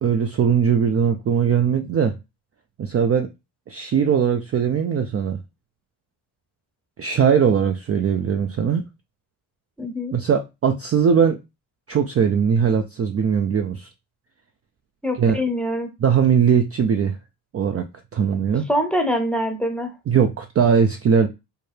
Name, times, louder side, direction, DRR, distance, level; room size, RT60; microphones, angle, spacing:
voice 1, 0.0-2.2 2.8-3.3 3.7-5.4 7.0-8.8 10.1-11.4 11.9-13.9 15.1-15.4 16.0-17.2 17.5-17.8 18.1-18.7 20.1-21.3, right 7 dB, 35° right, 0.4 m, -20 dB
voice 2, 9.8-10.2 15.0-15.9 18.7-19.9, equal, ahead, 0.7 m, -24 dB
4.5 x 2.2 x 3.2 m
cardioid pair, 100°, 45 cm